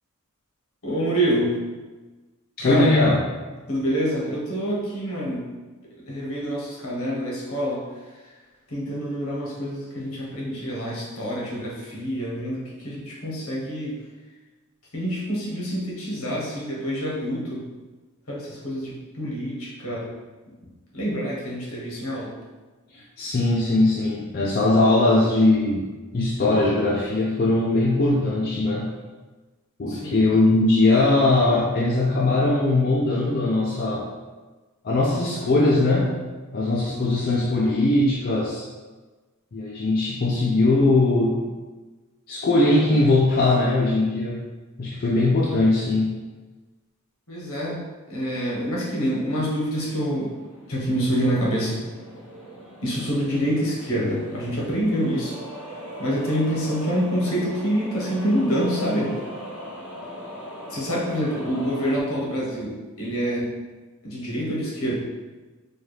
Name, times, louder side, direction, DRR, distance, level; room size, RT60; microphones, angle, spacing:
voice 1, 0.8-1.6 2.6-2.9 3.7-5.5 6.1-7.8 8.7-13.9 14.9-17.6 18.3-20.1 20.9-22.3 29.9-30.3 47.3-47.8 48.1-50.3 50.7-51.8 52.8-55.3 56.0-59.1 60.7-63.5 64.0-65.0, equal, 70° left, -4 dB, 1.1 m, -26 dB
voice 2, 2.6-3.2 22.9-25.9 26.1-29.0 29.8-34.1 34.8-36.1 36.5-38.6 39.5-41.5 42.3-44.4 44.8-46.2, left 2 dB, 45° left, -4 dB, 0.4 m, -20 dB
sound 1, 49.8-62.0, equal, 20° right, 1.2 m, -40 dB
4.4 x 2.4 x 3.2 m, 1.3 s
head